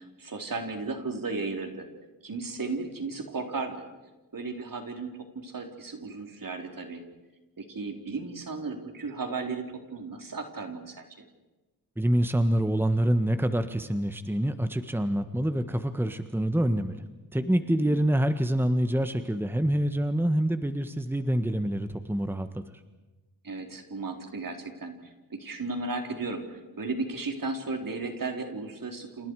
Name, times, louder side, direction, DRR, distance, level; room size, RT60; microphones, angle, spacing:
voice 1, 0.0-1.9 2.2-3.8 4.3-7.0 7.6-11.0 17.8-18.0 23.4-29.3, right 3 dB, 60° right, 4 dB, 4.3 m, -35 dB
voice 2, 12.0-17.0 17.3-22.6, right 1 dB, 5° right, 9 dB, 1.5 m, -26 dB
30.0 x 28.5 x 4.9 m, 1.1 s
cardioid pair, 70°, 38 cm